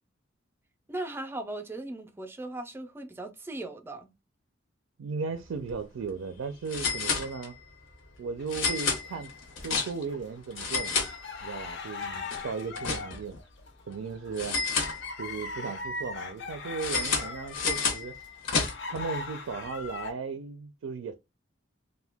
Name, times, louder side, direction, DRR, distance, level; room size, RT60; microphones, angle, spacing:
voice 1, 0.9-4.1, right 2 dB, 10° right, 0.3 m, -38 dB
voice 2, 5.0-7.5 8.2-9.3 9.6-11.0 11.4-13.4 13.9-14.6 15.2-18.2 18.9-21.1, right 5 dB, 90° right, 0.4 m, -36 dB
Cash Register Sale Sound old shop.stereo, 5.5-5.7 6.0-6.1 6.7-7.7 8.5-10.2 10.5-11.7 12.0-13.4 14.4-15.5 16.8-19.0, left 4 dB, 80° left, 0.8 m, -31 dB
sound 1, 8.4-9.7 10.1-20.1, left 4 dB, 60° left, 0.5 m, -40 dB
2.7 x 2.1 x 3.3 m
head